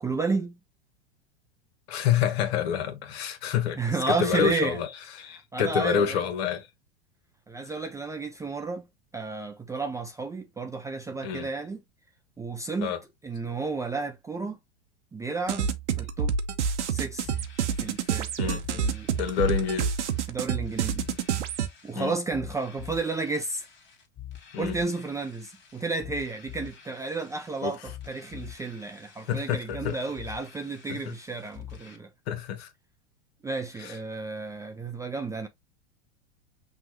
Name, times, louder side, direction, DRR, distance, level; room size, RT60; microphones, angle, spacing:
voice 1, 0.0-0.6 3.8-4.8 5.5-6.2 7.5-8.9 9.1-11.8 12.4-12.9 13.2-14.6 15.1-15.7 16.0-16.3 16.9-17.3 17.8-19.1 20.3-21.0 21.8-23.6 24.6-27.8 28.1-32.1 33.4-35.5, right 3 dB, 10° right, 0.4 m, -32 dB
voice 2, 1.9-6.7 7.6-7.7 11.2-11.5 12.8-13.0 18.4-18.7 19.2-19.9 22.0-22.1 24.5-24.8 27.6-27.9 29.3-30.0 30.9-31.1 32.3-32.7 33.8-34.0, left 8 dB, 60° left, 1.2 m, -28 dB
sound 1, 15.5-21.7, right 7 dB, 80° right, 0.8 m, -28 dB
sound 2, 17.2-32.0, left 11 dB, 30° left, 1.5 m, -45 dB
5.9 x 2.4 x 3.0 m
hypercardioid pair, 100°, 34 cm